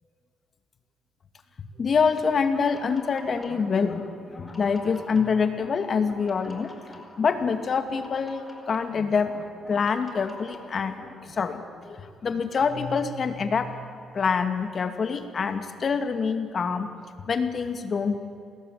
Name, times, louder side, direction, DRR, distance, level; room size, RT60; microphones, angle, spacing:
voice 1, 1.8-4.0 4.3-6.7 7.2-10.9 11.4-13.7 14.1-16.9 17.3-18.2, left 5 dB, 45° left, 9 dB, 2.4 m, -26 dB
sound 1, 2.4-11.3, left 2 dB, 25° left, 4.7 m, -46 dB
28.5 x 20.0 x 9.5 m, 2.4 s
cardioid pair, 90°, 0 cm